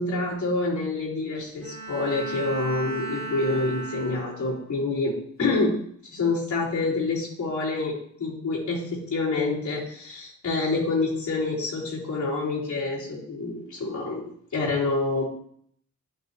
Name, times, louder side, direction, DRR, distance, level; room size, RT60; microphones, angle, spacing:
voice 1, 0.0-5.1 5.4-5.7 6.1-7.9 8.2-14.2 14.5-15.2, left 3 dB, 80° left, -7 dB, 3.7 m, -27 dB
Bowed string instrument, 1.6-4.8, right 2 dB, 65° right, 2.0 m, -36 dB
11.0 x 5.7 x 3.0 m, 0.62 s
wide cardioid pair, 135°, 29 cm